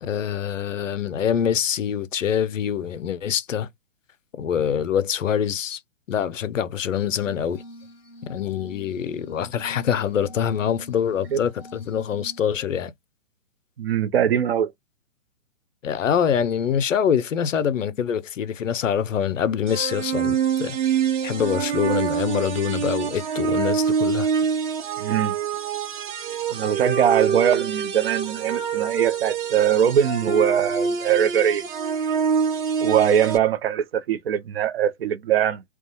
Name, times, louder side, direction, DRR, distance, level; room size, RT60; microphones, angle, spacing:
voice 1, 0.0-3.7 4.4-5.8 6.1-7.6 8.3-12.9 15.8-20.8 21.2-24.3, left 8 dB, 80° left, 0.6 m, -25 dB
Glass, 7.2-12.4, equal, 5° left, 0.3 m, -46 dB
voice 2, 13.8-14.7 25.0-25.3 26.5-31.6 32.8-35.6, right 9 dB, 55° right, 0.5 m, -21 dB
sound 1, 19.7-33.4, right 7 dB, 40° right, 0.8 m, -26 dB
2.4 x 2.2 x 2.7 m
figure-of-eight pair, 130°, 37 cm